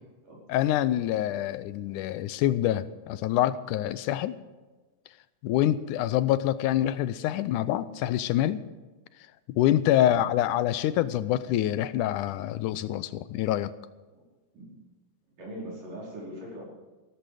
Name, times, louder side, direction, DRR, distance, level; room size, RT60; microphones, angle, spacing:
voice 1, 0.5-4.3 5.4-8.6 9.5-13.7, left 12 dB, 85° left, 15 dB, 2.1 m, -26 dB
voice 2, 10.0-10.3 14.1-14.2 14.5-14.7 15.4-16.7, right 1 dB, 90° right, -4 dB, 6.5 m, -41 dB
15.5 x 14.0 x 5.0 m, 1.2 s
omnidirectional pair, 3.6 m